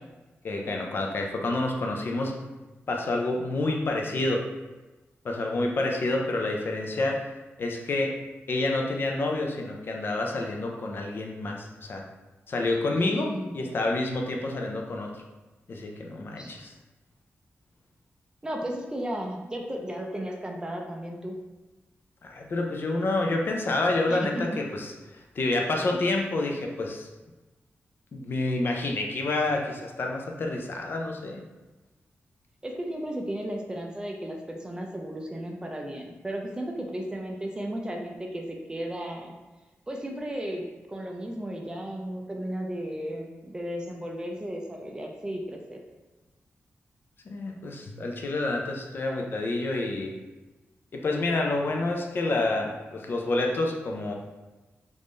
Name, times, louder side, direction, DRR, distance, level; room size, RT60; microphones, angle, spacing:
voice 1, 0.4-2.3 2.9-4.4 5.2-7.3 7.6-8.1 8.5-12.0 12.5-15.2 15.7-16.7 22.2-24.9 25.4-27.1 28.1-31.4 47.3-50.1 50.9-54.1, left 2 dB, 50° left, 1 dB, 0.5 m, -28 dB
voice 2, 12.9-13.6 16.4-16.5 18.4-21.3 24.1-24.6 32.6-39.3 39.9-45.8, right 1 dB, 15° right, 1 dB, 0.4 m, -34 dB
3.5 x 2.5 x 3.2 m, 1.1 s
wide cardioid pair, 155°, 5 cm